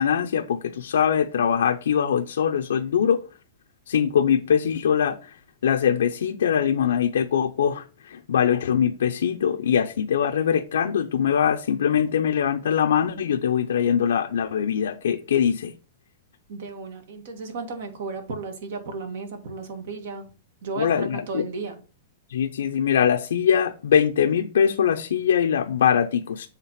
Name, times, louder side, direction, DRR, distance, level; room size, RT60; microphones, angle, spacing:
voice 1, 0.0-3.2 3.9-5.2 5.6-15.7 20.8-21.4 22.3-26.5, left 8 dB, 85° left, 0.6 m, -22 dB
voice 2, 16.5-20.3 20.6-21.8, right 4 dB, 60° right, 2.1 m, -34 dB
7.4 x 3.5 x 5.7 m
hypercardioid pair, 155°, 0 cm